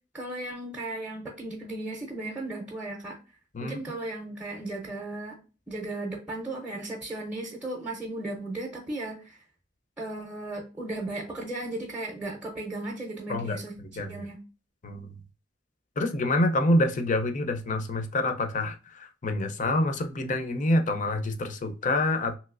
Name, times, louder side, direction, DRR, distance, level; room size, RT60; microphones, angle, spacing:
voice 1, 0.1-3.2 3.6-5.4 5.7-9.4 10.0-14.4, right 2 dB, 5° right, 0.6 m, -36 dB
voice 2, 16.0-22.4, left 1 dB, 40° left, 0.5 m, -27 dB
3.0 x 2.9 x 2.4 m
head